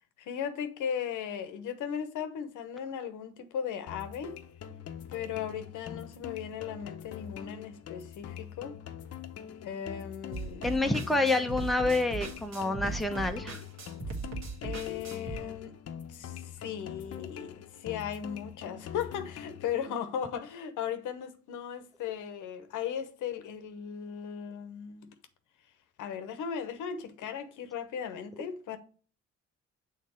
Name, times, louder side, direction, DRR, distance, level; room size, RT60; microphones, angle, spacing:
voice 1, 0.2-4.3 5.1-8.8 9.6-11.0 14.6-15.7 16.1-25.1 26.0-28.8, left 8 dB, 80° left, 0.9 m, -37 dB
sound 1, 3.9-19.9, left 9 dB, 55° left, 0.8 m, -44 dB
sound 2, 10.3-15.4, right 4 dB, 60° right, 1.7 m, -38 dB
voice 2, 10.6-13.6, left 2 dB, ahead, 0.8 m, -28 dB
6.6 x 3.7 x 4.3 m
cardioid pair, 90°, 30 cm